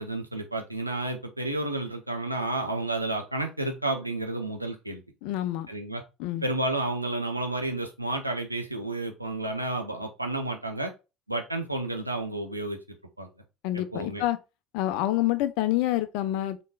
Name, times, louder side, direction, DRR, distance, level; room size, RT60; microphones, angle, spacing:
voice 1, 0.0-5.0 5.7-6.0 6.4-10.9 11.3-12.8 13.2-13.3 13.7-14.2, right 2 dB, 90° right, 0.6 m, -31 dB
voice 2, 5.2-5.7 6.2-6.4 13.6-14.4 14.7-16.6, left 14 dB, 60° left, 0.4 m, -27 dB
3.8 x 3.6 x 2.3 m
figure-of-eight pair, 60°, 0 cm